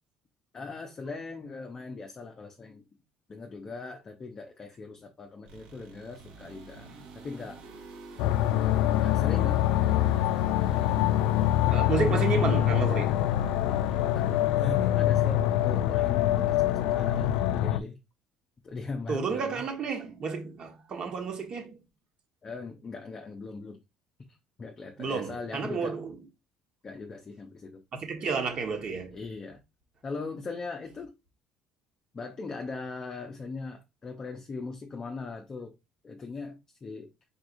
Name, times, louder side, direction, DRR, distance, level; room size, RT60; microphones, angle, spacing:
voice 1, 0.5-2.8 3.3-6.9 7.1-7.6 8.6-10.0 14.0-18.0 18.6-19.6 22.4-23.8 24.6-26.0 26.8-27.8 29.1-29.6 30.0-31.1 32.1-35.7 36.0-37.1, left 4 dB, 25° left, 0.7 m, -40 dB
sound 1, 5.5-17.6, right 4 dB, 75° right, 3.1 m, -49 dB
sound 2, 8.2-17.8, left 12 dB, 85° left, 0.4 m, -25 dB
voice 2, 11.7-13.3 14.0-14.1 19.1-21.8 25.0-26.1 27.9-29.2, right 5 dB, 40° right, 1.4 m, -31 dB
4.7 x 4.3 x 2.6 m
cardioid pair, 150°, 2 cm